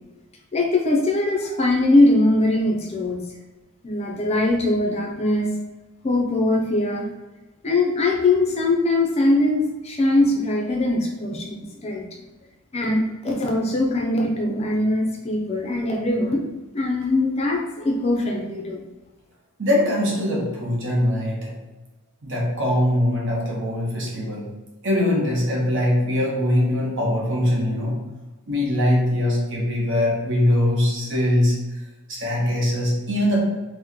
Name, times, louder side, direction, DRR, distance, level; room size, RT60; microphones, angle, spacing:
voice 1, 0.5-3.2 3.8-5.5 6.0-7.1 7.6-12.1 12.7-16.4 16.7-18.8, left 2 dB, 30° left, 0 dB, 0.5 m, -21 dB
voice 2, 19.6-21.6 22.2-24.5 24.8-28.0 28.5-31.6 32.1-33.4, left 1 dB, 55° right, -2 dB, 0.8 m, -22 dB
2.9 x 2.1 x 3.6 m, 1.1 s
head